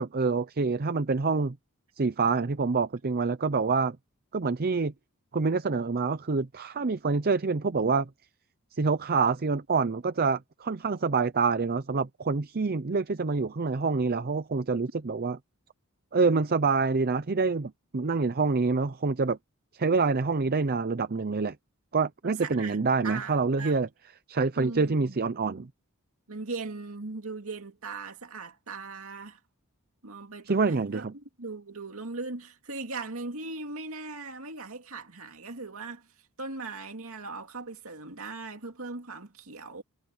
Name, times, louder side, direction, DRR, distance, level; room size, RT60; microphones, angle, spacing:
voice 1, 0.0-1.6 2.0-4.0 4.3-4.9 5.3-8.1 8.8-15.4 16.1-19.4 19.8-21.6 21.9-23.9 24.3-25.7 30.5-31.1, right 4 dB, 45° right, 0.6 m, -26 dB
voice 2, 22.2-23.8 24.6-25.2 26.3-29.4 30.0-36.1 36.4-39.8, right 3 dB, 65° right, 2.6 m, -39 dB
head